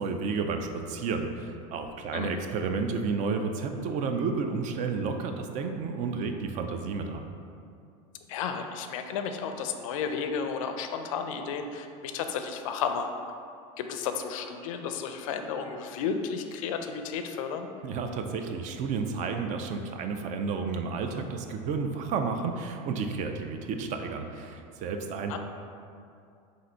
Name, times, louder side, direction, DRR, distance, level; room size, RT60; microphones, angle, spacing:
voice 1, 0.0-7.3 17.8-25.4, right 4 dB, 45° right, 6 dB, 0.4 m, -31 dB
voice 2, 8.3-13.1 13.8-17.7 25.3-25.4, left 6 dB, 85° left, 6 dB, 0.4 m, -33 dB
3.8 x 2.6 x 4.3 m, 2.5 s
supercardioid pair, 115°, 17 cm